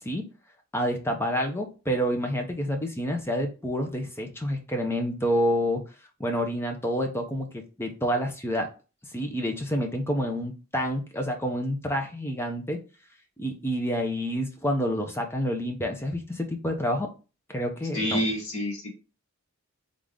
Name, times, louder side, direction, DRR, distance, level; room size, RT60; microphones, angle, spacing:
voice 1, 0.7-5.8 6.2-8.7 9.1-12.8 13.4-17.1 17.5-18.2, equal, 10° left, 3 dB, 0.7 m, -28 dB
voice 2, 17.9-18.9, equal, 75° left, -1 dB, 1.7 m, -28 dB
3.8 x 3.7 x 3.7 m, 0.33 s
head